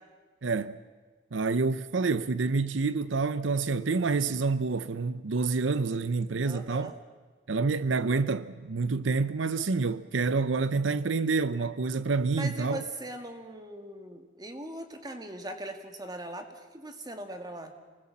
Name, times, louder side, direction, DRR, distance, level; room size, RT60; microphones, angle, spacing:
voice 1, 0.4-0.8 1.3-6.9 7.5-12.8, right 4 dB, 85° right, 0.7 m, -28 dB
voice 2, 6.4-7.0 12.4-17.7, right 1 dB, 20° right, 2.2 m, -40 dB
28.0 x 20.0 x 7.4 m
head